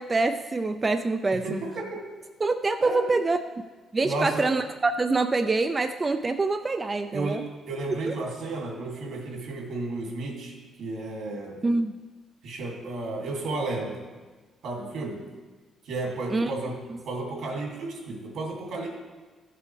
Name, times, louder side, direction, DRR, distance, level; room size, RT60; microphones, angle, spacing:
voice 1, 0.0-1.6 2.4-3.4 3.9-7.4 8.1-8.2 11.6-11.9 16.3-16.5, right 3 dB, 30° right, 7 dB, 0.4 m, -25 dB
voice 2, 1.3-2.0 2.8-3.1 4.0-4.5 7.1-11.6 12.4-14.0 14.6-15.3 15.9-16.8 17.0-18.9, right 2 dB, 80° right, -1 dB, 2.6 m, -33 dB
14.5 x 7.6 x 3.3 m, 1.3 s
cardioid pair, 90°, 0 cm